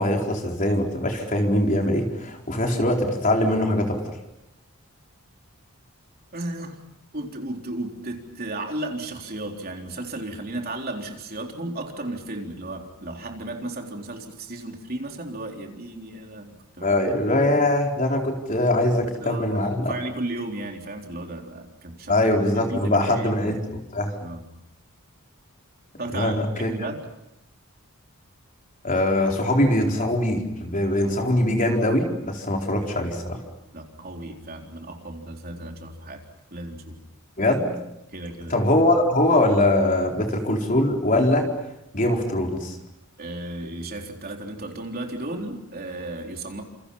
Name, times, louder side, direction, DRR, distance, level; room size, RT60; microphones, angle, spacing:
voice 1, 0.0-4.0 16.8-19.9 22.1-24.2 26.1-26.7 28.8-33.4 37.4-37.7 38.5-41.5 41.9-42.8, left 1 dB, 35° left, 1 dB, 4.3 m, -22 dB
voice 2, 6.3-6.8 7.1-17.0 18.9-19.4 19.9-22.1 22.6-23.6 24.2-24.4 26.0-27.0 33.3-33.4 33.7-36.2 36.5-37.0 38.1-38.5 43.2-46.6, right 2 dB, 40° right, 2 dB, 3.8 m, -34 dB
29.5 x 28.5 x 5.7 m, 0.83 s
head